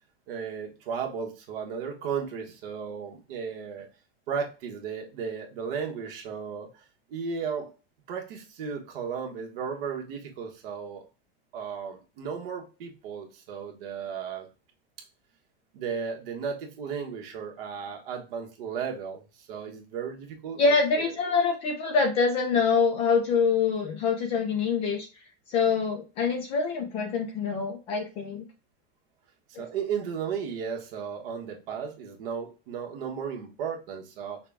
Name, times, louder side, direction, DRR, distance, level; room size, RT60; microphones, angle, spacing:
voice 1, 0.3-3.9 4.3-6.8 7.1-7.7 8.1-11.0 11.5-14.5 15.7-21.1 29.6-34.4, right 6 dB, 60° right, 1 dB, 1.3 m, -35 dB
voice 2, 20.6-25.1 25.5-28.5 29.5-29.6, left 5 dB, 20° left, 3 dB, 0.4 m, -25 dB
5.8 x 2.3 x 3.5 m, 0.32 s
supercardioid pair, 175°, 31 cm